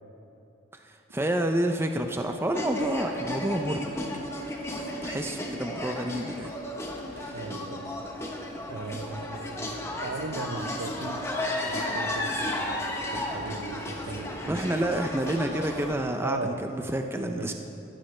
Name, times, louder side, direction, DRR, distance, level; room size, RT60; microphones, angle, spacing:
voice 1, 0.8-3.8 5.0-6.5 7.1-7.4 14.5-17.5, right 1 dB, 10° right, 5 dB, 0.4 m, -29 dB
sound 1, 2.5-15.9, left 1 dB, 15° left, 0.9 m, -33 dB
voice 2, 7.3-8.0 8.7-14.6 16.2-16.7 17.2-17.5, right 3 dB, 70° right, 9 dB, 0.6 m, -38 dB
15.5 x 13.0 x 3.2 m, 2.9 s
head